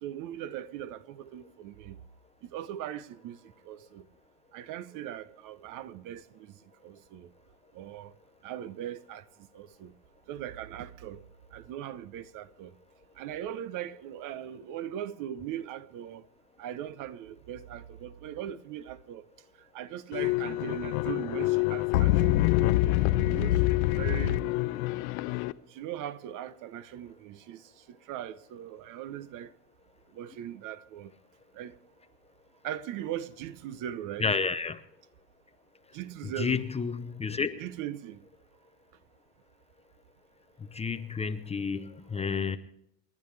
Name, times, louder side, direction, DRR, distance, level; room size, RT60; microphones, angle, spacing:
voice 1, 0.0-2.0 2.4-3.4 3.6-4.1 4.5-6.5 6.8-7.3 7.7-8.1 8.4-9.2 9.5-9.9 10.3-11.2 11.5-12.7 13.2-16.2 16.6-19.2 19.7-22.5 23.2-24.4 25.7-29.5 30.1-31.1 31.5-31.8 32.6-34.3 35.9-36.6 37.6-38.2 42.2-42.6, right 11 dB, 45° right, 0.9 m, -39 dB
sound 1, 20.1-25.5, left 16 dB, 65° left, 0.9 m, -26 dB
voice 2, 34.2-34.8 36.2-37.6 40.7-42.6, left 5 dB, 15° left, 0.7 m, -30 dB
29.0 x 10.5 x 3.3 m
hypercardioid pair, 110°, 45 cm